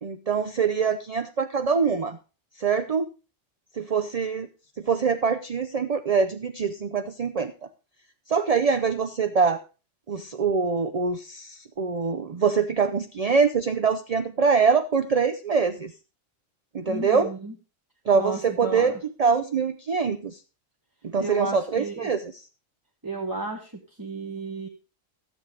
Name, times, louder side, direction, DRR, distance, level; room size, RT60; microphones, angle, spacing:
voice 1, 0.0-2.2 2.6-3.1 3.8-4.5 4.8-7.5 8.3-9.6 10.1-15.9 16.7-17.3 18.1-18.9 19.2-20.4 21.0-22.2, right 5 dB, 40° right, 9 dB, 0.5 m, -24 dB
voice 2, 16.9-17.5 18.1-19.0 21.2-22.1 23.0-23.7 24.0-24.7, right 2 dB, 15° right, 1 dB, 1.1 m, -33 dB
13.5 x 7.3 x 4.9 m, 0.33 s
omnidirectional pair, 1.3 m